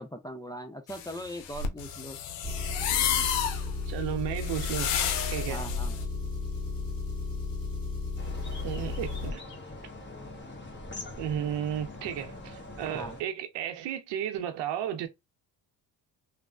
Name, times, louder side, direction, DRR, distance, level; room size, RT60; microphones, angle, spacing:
voice 1, 0.0-2.2 5.5-6.0 12.9-13.2, equal, 10° left, 0.3 m, -40 dB
sound 1, 0.9-6.0, left 8 dB, 85° left, 0.6 m, -31 dB
Engine, 2.4-9.3, left 3 dB, 50° left, 1.7 m, -34 dB
voice 2, 3.9-4.9 5.3-5.7 8.6-9.4 11.2-15.1, right 10 dB, 75° right, 0.7 m, -33 dB
sound 2, 8.2-13.2, left 2 dB, 25° left, 1.2 m, -43 dB
3.2 x 2.1 x 2.3 m
supercardioid pair, 65°, 44 cm